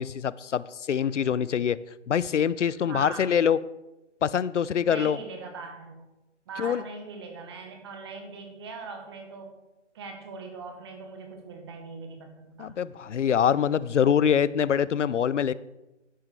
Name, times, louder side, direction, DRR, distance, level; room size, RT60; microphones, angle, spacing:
voice 1, 0.0-1.8 2.1-3.6 4.2-5.2 6.6-6.8 12.6-15.5, left 8 dB, 80° left, 19 dB, 0.6 m, -24 dB
voice 2, 2.7-3.3 4.9-6.0 6.5-9.6 9.9-12.7, right 4 dB, 20° right, 4 dB, 1.0 m, -41 dB
11.0 x 10.0 x 3.3 m, 0.99 s
figure-of-eight pair, 155°, 36 cm